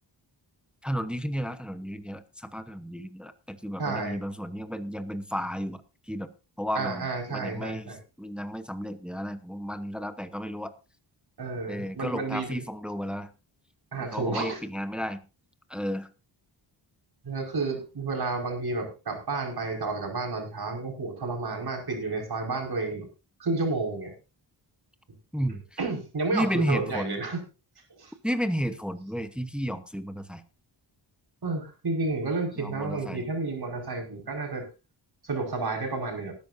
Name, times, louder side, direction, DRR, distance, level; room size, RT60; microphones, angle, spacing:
voice 1, 0.8-6.3 6.6-10.7 11.7-13.3 14.0-15.2 15.7-16.1 25.3-25.6 26.3-27.2 28.2-30.4 32.6-33.2, equal, ahead, 9 dB, 1.0 m, -33 dB
voice 2, 3.8-4.2 6.7-8.0 11.4-12.6 13.9-14.6 17.2-23.1 23.4-24.1 25.8-27.4 28.0-28.1 31.4-34.7 35.2-36.3, right 3 dB, 55° right, 2 dB, 5.2 m, -31 dB
19.5 x 10.5 x 2.7 m, 0.31 s
wide cardioid pair, 125°, 45 cm